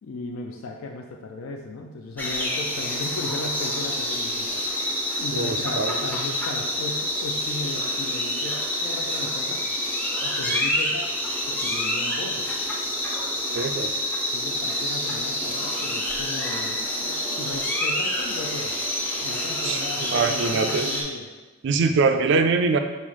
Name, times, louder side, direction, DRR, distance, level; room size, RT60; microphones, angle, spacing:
voice 1, 0.0-4.6 5.2-9.6 10.2-11.1 11.5-12.5 14.3-18.7 19.2-21.3 22.1-22.2, left 2 dB, 65° left, 1 dB, 0.4 m, -36 dB
sound 1, 2.2-21.0, left 1 dB, 10° left, 0.4 m, -27 dB
voice 2, 5.3-5.9 13.5-14.0 19.6-20.9 21.6-22.8, right 4 dB, 55° right, 7 dB, 0.3 m, -23 dB
5.4 x 2.0 x 4.7 m, 1.2 s
head